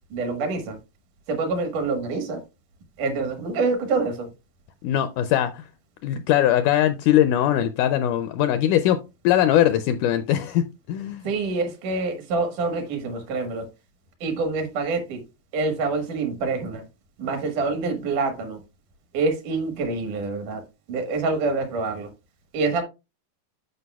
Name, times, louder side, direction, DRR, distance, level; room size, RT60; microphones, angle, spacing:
voice 1, 0.1-0.8 1.3-2.4 3.0-4.3 11.2-13.7 14.2-15.2 15.5-16.8 17.2-18.6 19.1-20.6 20.9-22.1 22.5-22.8, right 3 dB, 70° right, 2.8 m, -26 dB
voice 2, 4.8-5.6 6.0-11.3, left 11 dB, 80° left, 1.8 m, -21 dB
12.0 x 5.1 x 2.3 m
omnidirectional pair, 4.0 m